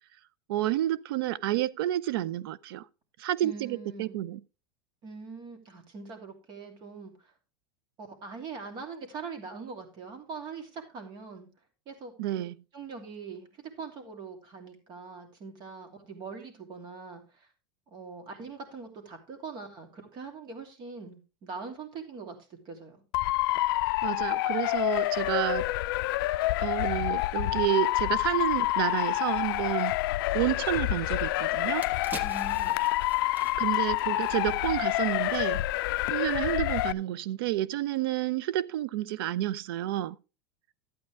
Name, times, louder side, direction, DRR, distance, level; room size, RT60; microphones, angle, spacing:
voice 1, 0.5-2.8 3.2-4.4 12.2-12.5 24.0-25.7 26.6-30.0 30.3-31.8 33.6-35.6 36.1-40.2, right 13 dB, 65° right, 0.6 m, -30 dB
voice 2, 3.4-4.2 5.0-7.3 8.0-11.5 11.9-12.4 12.7-17.5 17.9-22.4 22.6-23.0 32.2-32.8, right 4 dB, 35° right, 2.8 m, -42 dB
Motor vehicle (road) / Siren, 23.1-36.9, left 18 dB, 65° left, 0.4 m, -28 dB
sound 1, 31.1-31.2 31.6-34.9 35.2-35.3, right 1 dB, 15° right, 1.1 m, -45 dB
12.5 x 8.6 x 3.4 m
supercardioid pair, 150°, 13 cm